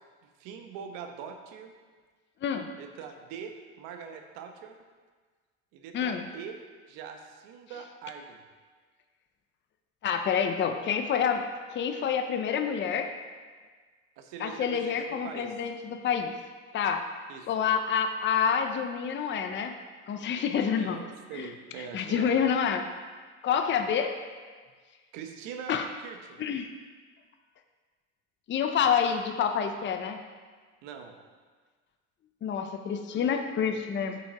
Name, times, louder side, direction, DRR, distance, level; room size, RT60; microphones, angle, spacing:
voice 1, 0.2-1.7 2.8-4.8 5.7-6.5 6.9-8.4 14.2-15.5 17.3-17.5 20.5-22.4 25.1-26.5 30.8-31.2, right 7 dB, 80° right, 5 dB, 1.1 m, -43 dB
voice 2, 10.0-11.4 11.7-13.1 14.4-16.3 16.7-17.1 17.5-19.7 20.1-21.0 21.3-21.5 21.8-22.9 23.4-24.1 25.7-25.9 26.4-26.7 28.5-30.2 32.4-34.2, left 7 dB, 35° left, 6 dB, 0.7 m, -28 dB
8.7 x 5.4 x 4.7 m, 1.5 s
supercardioid pair, 105°, 32 cm